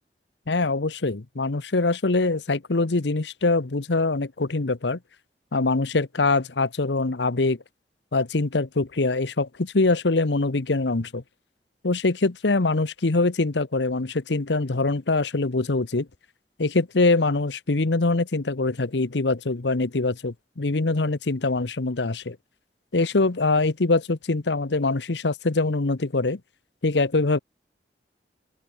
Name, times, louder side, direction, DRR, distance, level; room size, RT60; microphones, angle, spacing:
voice 1, 0.5-5.0 5.5-7.6 8.1-11.2 11.8-16.1 16.6-22.4 22.9-26.4 26.8-27.4, left 3 dB, 85° left, 1.0 m, -23 dB
open air
head